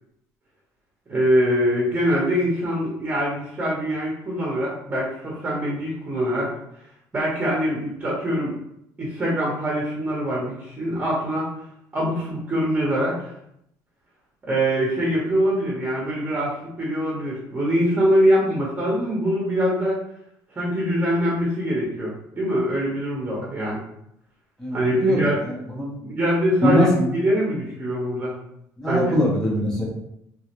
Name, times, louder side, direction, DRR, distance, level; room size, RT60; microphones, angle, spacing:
voice 1, 1.1-6.5 7.1-8.6 9.0-11.5 11.9-13.3 14.4-20.0 20.6-23.8 24.7-25.4 26.0-28.4 28.9-29.1, equal, 20° right, -4 dB, 0.9 m, -23 dB
voice 2, 24.6-25.9 26.6-26.9 28.8-29.8, equal, 5° left, -5 dB, 0.7 m, -22 dB
3.0 x 2.5 x 2.9 m, 0.76 s
cardioid pair, 135°, 7 cm